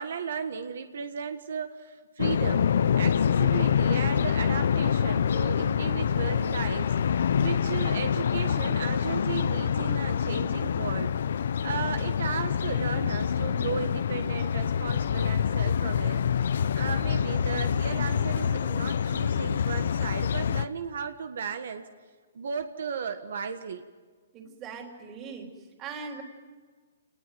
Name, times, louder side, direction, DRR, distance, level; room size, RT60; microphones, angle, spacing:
voice 1, 0.0-2.7 3.0-6.9 7.4-11.1 11.6-16.2 16.7-21.9 22.3-23.8, right 6 dB, 75° right, 8 dB, 1.5 m, -35 dB
sound 1, 2.2-20.7, left 8 dB, 70° left, 0.7 m, -26 dB
voice 2, 24.3-26.2, right 5 dB, 25° right, 3 dB, 3.5 m, -40 dB
27.5 x 19.5 x 9.3 m, 1.5 s
hypercardioid pair, 155°, 0 cm